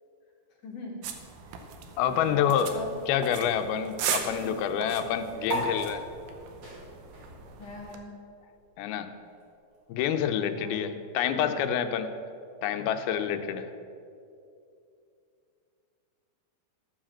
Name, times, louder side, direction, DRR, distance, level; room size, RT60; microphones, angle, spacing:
voice 1, 0.6-1.1 1.4-1.7 2.0-3.0 4.2-4.6 7.6-8.1 10.5-11.0 11.3-11.6, left 2 dB, 65° left, -3 dB, 2.7 m, -41 dB
sound 1, 1.0-8.0, right 7 dB, 75° right, 2.3 m, -38 dB
voice 2, 2.0-6.0 8.8-9.1 9.9-12.1 12.6-13.7, left 8 dB, 90° left, 9 dB, 2.6 m, -28 dB
sound 2, 5.4-12.3, right 2 dB, 55° right, 4.1 m, -40 dB
14.5 x 4.9 x 7.3 m, 2.6 s
omnidirectional pair, 4.3 m